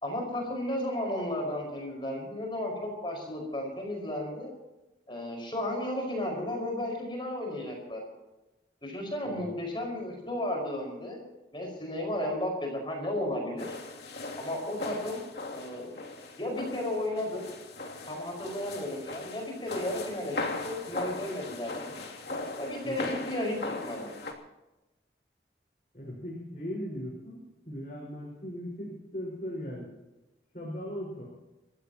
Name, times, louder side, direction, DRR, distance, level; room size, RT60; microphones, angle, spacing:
voice 1, 0.0-4.5 5.1-8.0 8.8-11.2 11.5-13.8 14.4-15.2 15.5-15.9 16.4-17.5 18.1-22.0 22.6-24.1, left 1 dB, 30° left, 1 dB, 5.2 m, -34 dB
sound 1, 13.6-24.3, left 2 dB, 70° left, 2.9 m, -39 dB
voice 2, 25.9-29.9 30.5-31.3, equal, 45° left, -4 dB, 5.2 m, -38 dB
28.5 x 15.0 x 3.0 m, 1.0 s
head